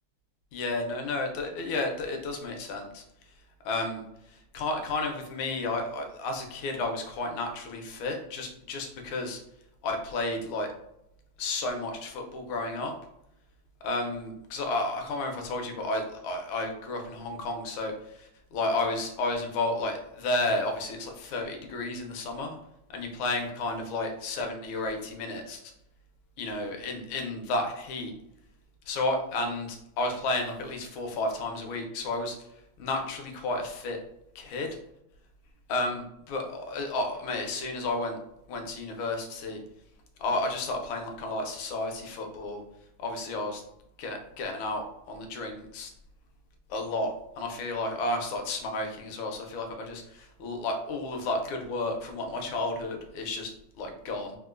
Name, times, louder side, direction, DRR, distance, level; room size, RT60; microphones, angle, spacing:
voice 1, 0.5-3.0 3.6-9.4 9.8-10.7 11.4-13.0 13.8-22.6 22.9-25.6 26.4-28.1 28.9-32.4 32.8-34.0 34.3-34.8 35.7-38.2 38.5-39.6 40.2-42.6 43.0-43.6 44.0-45.9 46.7-54.4, left 2 dB, 75° left, 4 dB, 1.4 m, -32 dB
3.6 x 2.4 x 2.4 m, 0.80 s
omnidirectional pair, 2.3 m